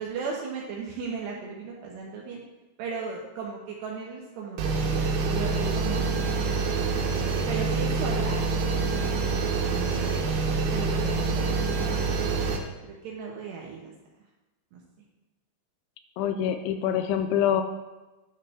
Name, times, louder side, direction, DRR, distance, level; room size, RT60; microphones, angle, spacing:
voice 1, 0.0-2.4 2.8-7.1 7.5-10.1 10.4-12.3 13.0-13.9 14.7-14.8, right 5 dB, 75° right, -2 dB, 2.7 m, -37 dB
sound 1, 4.6-12.6, right 4 dB, 90° right, 3.6 m, -26 dB
voice 2, 16.2-17.6, left 9 dB, 85° left, 7 dB, 2.7 m, -25 dB
11.0 x 6.5 x 3.6 m, 1.1 s
omnidirectional pair, 5.7 m